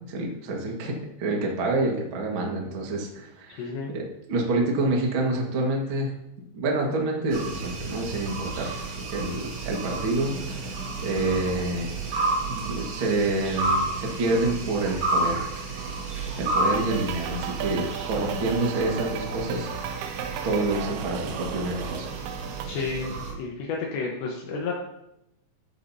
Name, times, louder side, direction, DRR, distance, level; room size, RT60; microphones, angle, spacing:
voice 1, 0.1-3.6 3.9-4.0 4.3-6.1 6.5-12.1 12.5-15.5 16.4-19.7 20.4-22.2, right 2 dB, 65° right, -1 dB, 1.2 m, -28 dB
voice 2, 3.6-4.0 22.7-24.7, left 4 dB, 75° left, -1 dB, 3.3 m, -31 dB
sound 1, 7.3-23.3, right 2 dB, 50° right, 1.7 m, -31 dB
sound 2, 15.8-22.7, right 8 dB, 85° right, 2.2 m, -36 dB
13.0 x 8.7 x 2.8 m, 0.82 s
omnidirectional pair, 5.3 m